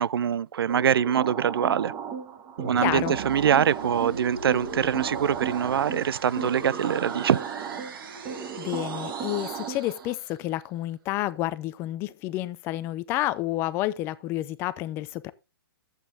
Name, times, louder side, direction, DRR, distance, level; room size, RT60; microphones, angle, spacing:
voice 1, 0.0-1.9 2.7-7.4, right 8 dB, 85° right, 0.4 m, -24 dB
sound 1, 0.7-10.1, right 7 dB, 25° right, 1.1 m, -35 dB
sound 2, 2.6-10.5, right 5 dB, 65° right, 2.2 m, -39 dB
voice 2, 2.8-3.2 8.6-15.3, left 15 dB, 20° left, 0.4 m, -30 dB
10.0 x 8.1 x 3.4 m
hypercardioid pair, 155°, 12 cm